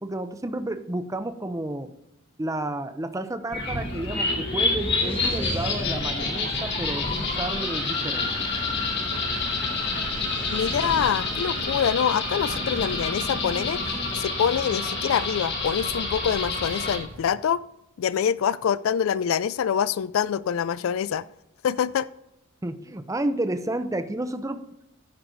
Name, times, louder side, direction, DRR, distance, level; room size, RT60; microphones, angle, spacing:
voice 1, 0.0-1.9 2.4-8.5 22.6-24.6, right 1 dB, 15° right, 10 dB, 0.6 m, -31 dB
sound 1, 3.5-17.0, left 3 dB, 55° left, 2.3 m, -28 dB
Wind, 3.5-14.2, left 1 dB, 25° left, 1.1 m, -37 dB
sound 2, 7.7-17.2, right 1 dB, 65° right, 1.7 m, -42 dB
voice 2, 10.5-13.8 14.1-17.6 18.0-21.2 21.6-22.1, left 8 dB, 70° left, 18 dB, 0.3 m, -25 dB
15.0 x 6.0 x 3.9 m, 0.87 s
head